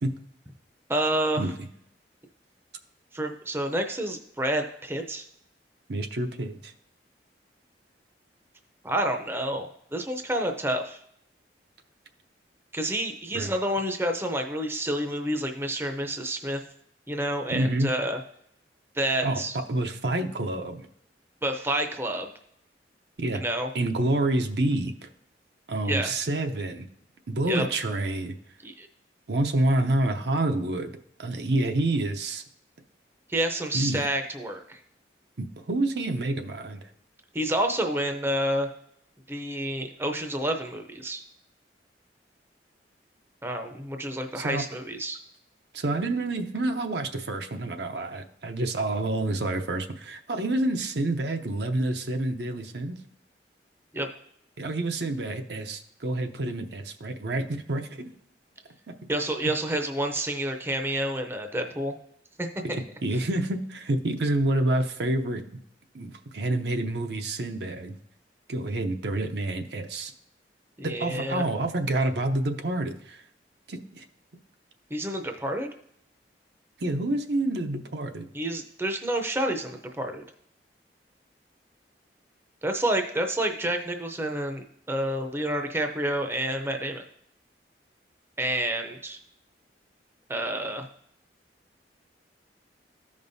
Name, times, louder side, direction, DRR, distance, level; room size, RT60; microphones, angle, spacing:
voice 1, 0.9-1.5 3.1-5.3 8.8-11.0 12.7-16.6 17.1-18.2 18.9-19.6 21.4-22.3 23.3-23.7 25.8-26.1 27.5-27.6 28.6-28.9 33.3-34.8 37.3-38.7 39.3-41.2 43.4-45.2 53.9-54.1 59.1-61.9 62.4-62.5 70.8-71.4 74.9-75.7 78.3-80.2 82.6-87.0 88.4-89.2 90.3-90.9, right 1 dB, 15° right, 5 dB, 0.6 m, -29 dB
voice 2, 5.9-6.7 13.3-13.5 17.5-17.9 19.2-20.9 23.2-23.4 23.7-25.1 25.7-26.9 27.3-28.3 29.3-32.4 33.7-34.1 35.4-36.8 44.3-44.6 45.7-53.0 54.6-58.1 58.9-59.0 62.7-65.4 65.9-68.0 68.5-70.1 70.8-73.2 73.7-74.0 76.8-78.2, right 2 dB, 65° right, 6 dB, 0.7 m, -28 dB
14.0 x 5.3 x 2.7 m, 0.71 s
head